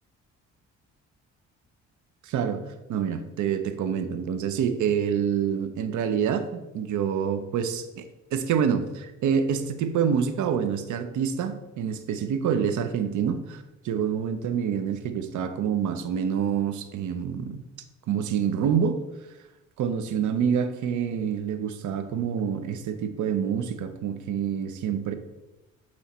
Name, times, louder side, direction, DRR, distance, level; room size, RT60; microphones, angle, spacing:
voice 1, 2.2-2.6 2.9-8.0 8.3-17.6 18.1-19.0 19.8-25.1, right 7 dB, 75° right, 9 dB, 0.7 m, -27 dB
8.3 x 3.2 x 4.2 m, 1.0 s
cardioid pair, 90°, 30 cm